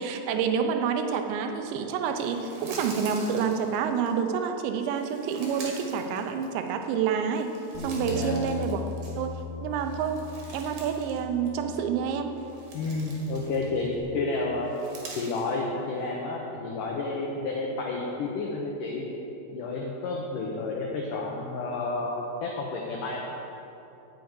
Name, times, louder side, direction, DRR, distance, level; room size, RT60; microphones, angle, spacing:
voice 1, 0.0-7.5 7.8-8.8 9.2-10.2 10.5-12.4, right 6 dB, 85° right, 6 dB, 3.1 m, -28 dB
sound 1, 2.1-4.1 4.8-6.9 7.2-9.4 9.8-11.2 11.5-11.6 12.3-13.9 14.6-15.6, right 3 dB, 55° right, 3.2 m, -45 dB
Bass guitar, 7.7-14.0, left 2 dB, 25° left, 0.7 m, -39 dB
voice 2, 8.1-8.4 12.7-14.7 15.2-19.1 19.5-23.2, left 3 dB, 90° left, -1 dB, 1.8 m, -31 dB
9.4 x 6.9 x 8.8 m, 3.0 s
omnidirectional pair, 5.1 m